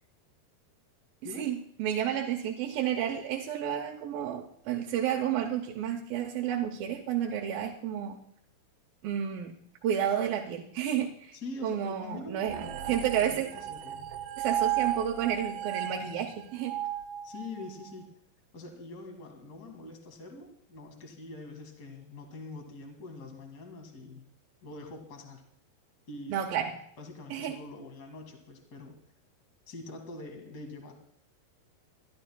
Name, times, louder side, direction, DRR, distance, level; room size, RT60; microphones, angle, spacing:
voice 1, 1.4-8.2 9.0-9.5 9.8-11.4 11.6-12.6 12.9-13.5 14.4-16.8 26.3-26.7 27.3-27.6, right 9 dB, 75° right, 0 dB, 2.4 m, -31 dB
voice 2, 11.3-14.1 17.2-18.1 18.5-24.3 24.6-25.5 26.1-26.4 27.0-29.0 29.7-30.9, left 2 dB, 35° left, 4 dB, 1.6 m, -44 dB
sound 1, 12.4-17.9, right 11 dB, 90° right, 2.8 m, -34 dB
25.5 x 12.0 x 2.3 m, 0.68 s
omnidirectional pair, 4.5 m